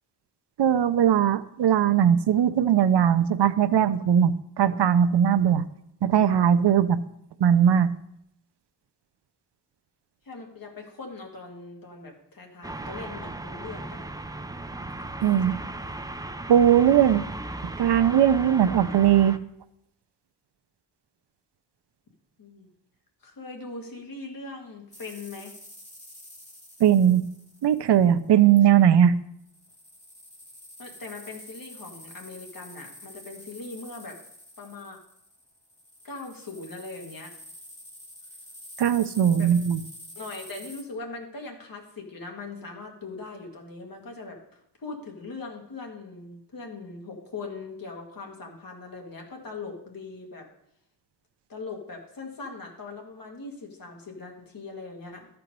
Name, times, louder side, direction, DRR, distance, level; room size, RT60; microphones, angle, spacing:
voice 1, 0.6-5.6 6.0-7.0 7.4-7.9 15.2-15.6 16.5-17.2 17.8-19.4 26.8-27.2 27.6-29.1 38.8-39.8, right 9 dB, 80° right, 13 dB, 0.6 m, -19 dB
voice 2, 10.2-14.1 22.4-22.7 23.2-25.5 28.8-29.0 30.8-34.2 34.6-35.0 36.0-37.3 39.4-39.5 40.2-50.5 51.5-55.3, left 3 dB, 55° left, 1 dB, 1.9 m, -40 dB
sound 1, 12.6-19.4, right 2 dB, 10° right, 0.3 m, -36 dB
sound 2, 24.9-28.3 29.4-40.8, left 1 dB, 15° left, 2.3 m, -47 dB
13.0 x 4.5 x 5.2 m, 0.76 s
wide cardioid pair, 130°, 41 cm